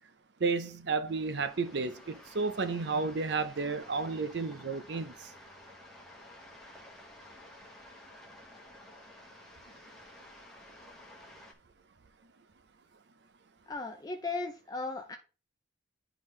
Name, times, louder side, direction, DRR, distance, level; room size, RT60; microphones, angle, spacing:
voice 1, 0.4-5.3, right 4 dB, 60° right, 0.6 m, -32 dB
sound 1, 1.1-11.5, left 1 dB, ahead, 1.0 m, -53 dB
voice 2, 13.7-15.2, left 3 dB, 20° left, 0.5 m, -36 dB
10.0 x 3.8 x 3.2 m
head